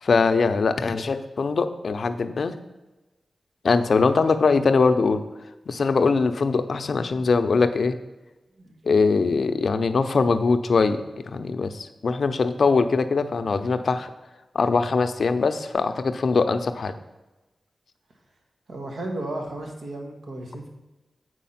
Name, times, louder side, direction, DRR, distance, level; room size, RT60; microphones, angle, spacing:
voice 1, 0.0-2.5 3.6-5.2 5.7-8.0 8.8-14.1 14.5-16.9, left 4 dB, 60° left, 9 dB, 0.5 m, -22 dB
voice 2, 18.7-20.7, right 1 dB, 90° right, 2 dB, 1.5 m, -34 dB
8.4 x 4.8 x 5.7 m, 1.1 s
wide cardioid pair, 150°, 0 cm